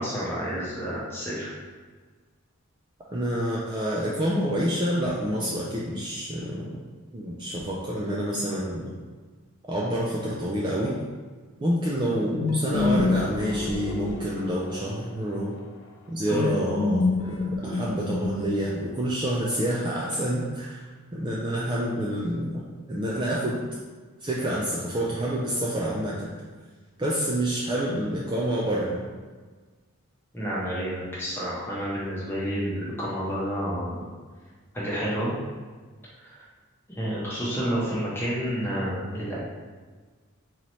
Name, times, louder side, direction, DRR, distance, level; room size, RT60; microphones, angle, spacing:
voice 1, 0.0-1.5 16.3-16.4 30.3-34.1 34.7-35.3 36.2-36.4 36.9-39.4, equal, 10° left, -7 dB, 0.9 m, -30 dB
voice 2, 3.1-6.7 7.1-9.0 9.7-11.0 11.6-15.5 16.1-20.8 21.1-22.6 22.9-23.6 24.2-26.3 27.0-29.0, equal, 20° right, -5 dB, 0.3 m, -28 dB
sound 1, 12.3-14.9 16.3-18.7, left 3 dB, 75° left, 0.6 m, -27 dB
3.9 x 2.9 x 3.1 m, 1.4 s
head